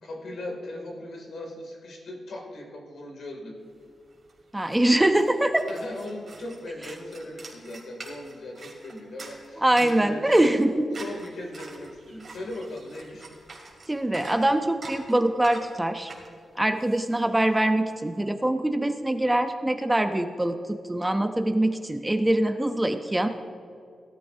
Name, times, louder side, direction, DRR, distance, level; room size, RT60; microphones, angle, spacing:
voice 1, 0.0-3.6 5.7-10.5 11.0-13.3, left 1 dB, 75° left, 1 dB, 2.4 m, -38 dB
sound 1, 3.8-3.9 4.1-17.9, right 3 dB, 40° right, 2.4 m, -45 dB
voice 2, 4.5-5.7 9.6-10.9 13.9-16.1 16.6-23.3, right 1 dB, 10° right, 7 dB, 0.5 m, -23 dB
18.0 x 12.0 x 2.6 m, 2.3 s
wide cardioid pair, 145°, 0 cm